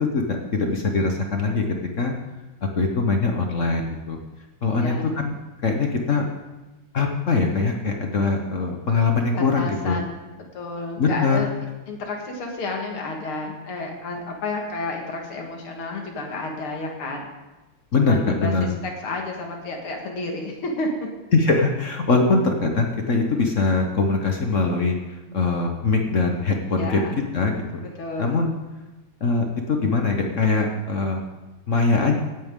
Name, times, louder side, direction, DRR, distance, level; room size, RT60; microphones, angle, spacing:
voice 1, 0.1-1.6 2.0-2.1 2.7-4.2 4.6-5.3 5.6-6.3 6.9-10.0 11.0-11.4 17.9-18.7 21.3-25.0 25.3-27.0 27.3-27.8 28.2-28.5 29.2-31.2 31.7-32.1, left 3 dB, 45° left, 3 dB, 1.1 m, -22 dB
voice 2, 4.7-5.0 9.3-10.2 10.5-11.5 11.9-17.3 18.0-20.9 26.7-27.2 28.0-28.3, left 2 dB, 90° left, 1 dB, 2.7 m, -31 dB
17.0 x 9.2 x 3.7 m, 1.1 s
omnidirectional pair, 2.3 m